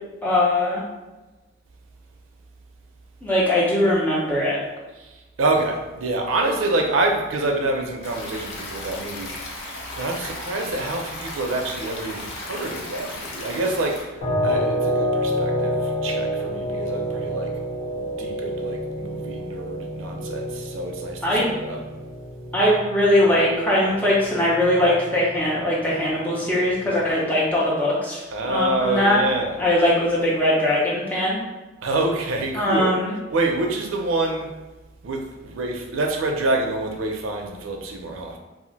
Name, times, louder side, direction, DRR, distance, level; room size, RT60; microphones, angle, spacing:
voice 1, 0.2-0.8 3.2-4.6 21.2-21.5 22.5-29.2 29.6-31.4 32.5-33.1, left 1 dB, 10° left, 0.6 m, -21 dB
voice 2, 5.0-9.6 10.0-17.5 18.0-21.8 28.3-29.6 31.8-33.0 33.3-34.5 35.0-38.4, right 2 dB, 85° right, 0.5 m, -27 dB
Stream, 8.0-14.0, left 1 dB, 80° left, 0.6 m, -35 dB
sound 1, 14.2-27.2, equal, 40° left, 1.0 m, -29 dB
2.4 x 2.1 x 3.9 m
head